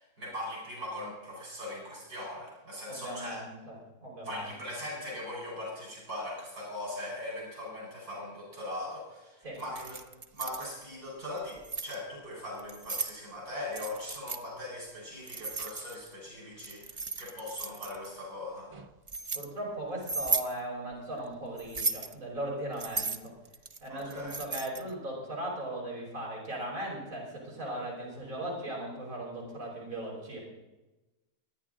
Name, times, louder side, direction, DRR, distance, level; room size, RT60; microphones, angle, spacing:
voice 1, 0.0-3.4 4.3-10.0 10.3-18.7 23.9-24.4, left 1 dB, 85° right, -3 dB, 5.5 m, -40 dB
voice 2, 2.9-3.8 4.0-4.4 9.4-9.6 19.3-23.3 23.8-30.4, right 1 dB, 65° right, -4 dB, 5.7 m, -38 dB
Keys jangling, 9.6-10.7 11.4-11.9 12.6-13.1 13.7-14.4 15.3-16.1 16.6-18.1 18.7-19.4 20.0-20.5 21.6-22.1 22.8-24.9, right 3 dB, 35° right, 0.5 m, -35 dB
24.5 x 10.0 x 3.8 m, 1.1 s
omnidirectional pair, 1.6 m